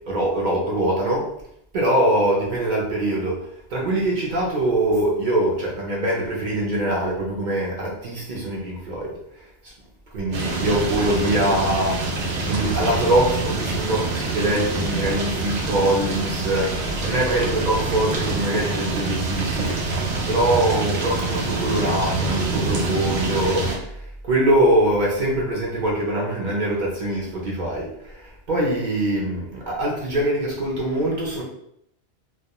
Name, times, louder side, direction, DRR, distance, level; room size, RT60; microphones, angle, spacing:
voice 1, 0.1-1.3 1.7-3.4 3.7-9.1 10.1-12.0 12.5-16.7 17.0-19.8 20.3-23.7 24.2-27.9 28.1-31.4, right 1 dB, 50° right, -3 dB, 0.6 m, -23 dB
sound 1, 10.3-23.8, right 3 dB, 80° right, 0.9 m, -26 dB
2.2 x 2.2 x 2.8 m, 0.72 s
omnidirectional pair, 1.2 m